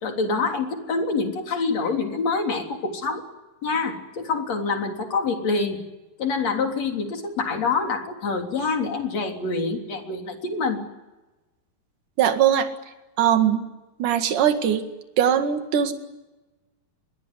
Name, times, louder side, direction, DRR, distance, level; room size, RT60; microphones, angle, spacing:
voice 1, 0.0-3.2 3.6-5.8 6.2-10.8, left 4 dB, 45° left, 3 dB, 4.4 m, -26 dB
voice 2, 12.2-12.7 13.2-13.6 14.0-14.8 15.2-15.9, right 9 dB, 60° right, 7 dB, 3.4 m, -20 dB
24.5 x 22.0 x 9.7 m, 1.1 s
omnidirectional pair, 4.2 m